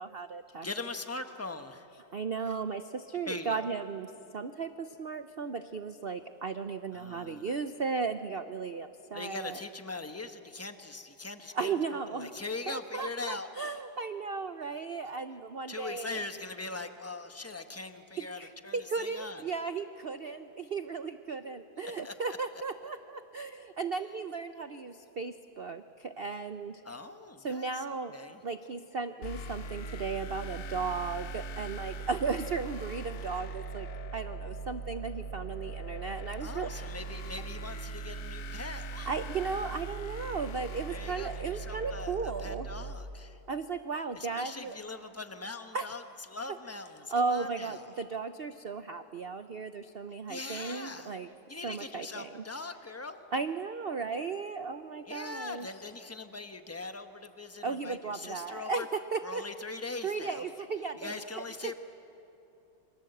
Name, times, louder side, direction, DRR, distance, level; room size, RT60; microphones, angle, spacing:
voice 1, 0.0-0.7 2.1-4.1 4.3-9.6 11.5-12.3 12.7-16.2 18.2-26.8 27.4-33.9 34.1-36.9 38.9-42.7 43.5-44.8 45.7-45.9 47.1-51.3 51.6-52.4 53.3-55.7 57.6-59.4 60.0-61.7, right 4 dB, 80° right, 10 dB, 0.5 m, -35 dB
voice 2, 0.6-1.9 2.5-2.6 3.3-3.7 6.9-7.5 9.1-11.8 12.1-13.5 15.7-19.4 21.8-22.4 26.8-28.4 36.4-39.1 40.9-43.4 44.1-47.9 50.3-51.2 51.5-53.2 55.0-58.9 59.2-60.5 61.0-61.8, left 3 dB, 10° left, 7 dB, 0.7 m, -41 dB
sound 1, 29.2-42.9, right 3 dB, 55° left, 1.0 m, -40 dB
28.5 x 25.5 x 7.9 m, 2.9 s
omnidirectional pair, 2.1 m